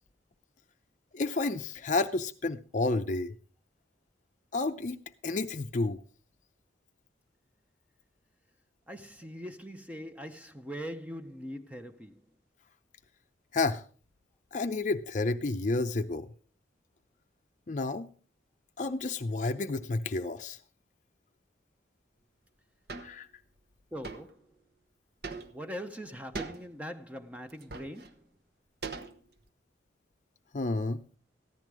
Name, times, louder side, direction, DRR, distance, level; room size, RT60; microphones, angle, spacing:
voice 1, 1.1-3.3 4.5-5.0 5.2-6.0 13.5-13.8 14.5-16.3 17.7-18.1 18.8-20.6 23.0-23.3 30.5-31.0, left 3 dB, 40° left, 0.5 m, -30 dB
voice 2, 8.9-12.1 23.9-24.4 25.5-28.2, equal, 5° right, 0.6 m, -41 dB
sound 1, 22.9-23.2 24.0-24.3 25.2-25.7 26.3-26.7 27.5-28.1 28.8-29.5, right 4 dB, 55° right, 1.1 m, -40 dB
14.5 x 11.0 x 4.7 m
head